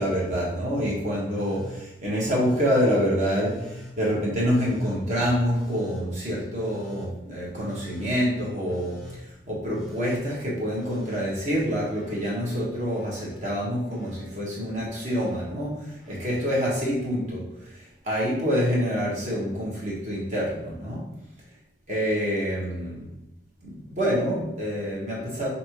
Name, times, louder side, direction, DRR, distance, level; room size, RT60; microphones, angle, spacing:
voice 1, 0.0-9.0 9.5-21.0 21.9-23.0 23.6-25.5, equal, 40° right, -5 dB, 1.3 m, -27 dB
Telephone, 1.3-1.9 2.3-2.9 3.4-3.9 4.5-5.0 5.5-6.0 6.5-7.1 7.6-8.1 8.6-9.2 9.7-10.2 10.7-12.3 12.6-13.3 13.9-14.4 14.9-15.4 16.0-16.5 17.7-17.8, left 1 dB, ahead, 0.8 m, -44 dB
5.4 x 2.7 x 3.0 m, 0.89 s
head